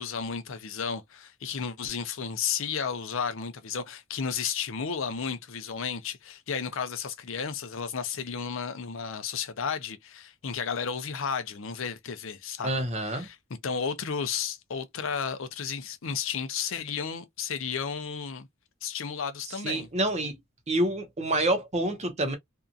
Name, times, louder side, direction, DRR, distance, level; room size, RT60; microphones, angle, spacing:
voice 1, 0.0-13.4 13.6-18.5 18.8-19.9, left 6 dB, 65° left, 0.6 m, -33 dB
voice 2, 12.6-13.3 19.6-20.3 20.7-22.4, right 1 dB, 35° right, 0.8 m, -27 dB
2.7 x 2.4 x 2.4 m
head